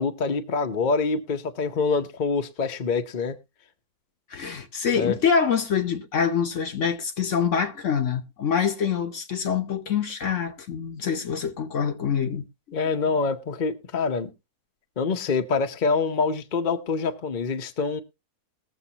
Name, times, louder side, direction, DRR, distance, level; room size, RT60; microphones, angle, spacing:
voice 1, 0.0-3.4 4.9-5.2 12.7-14.3 15.0-18.0, left 4 dB, 40° left, 0.8 m, -25 dB
voice 2, 4.3-12.4, left 7 dB, 55° left, 1.1 m, -25 dB
21.0 x 7.2 x 2.8 m
omnidirectional pair, 1.7 m